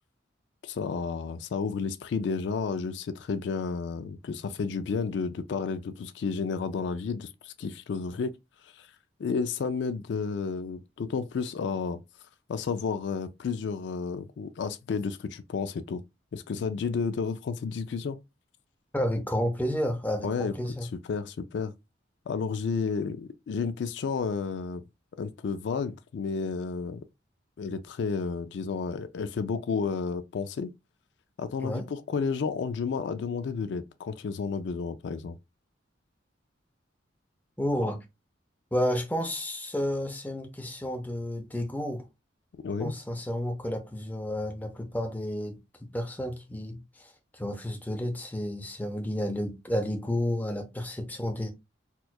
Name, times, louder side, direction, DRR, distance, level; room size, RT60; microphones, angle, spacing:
voice 1, 0.6-8.3 8.6-8.9 9.2-12.0 12.5-16.0 16.3-18.2 20.2-20.5 21.1-21.7 22.3-24.8 25.2-27.0 27.6-30.7 31.4-35.4 42.6-42.9, left 5 dB, 65° left, 0.3 m, -31 dB
voice 2, 18.9-20.9 31.6-31.9 37.6-38.0 38.7-42.1 42.8-51.5, equal, 10° left, 0.5 m, -31 dB
4.3 x 2.3 x 2.2 m
head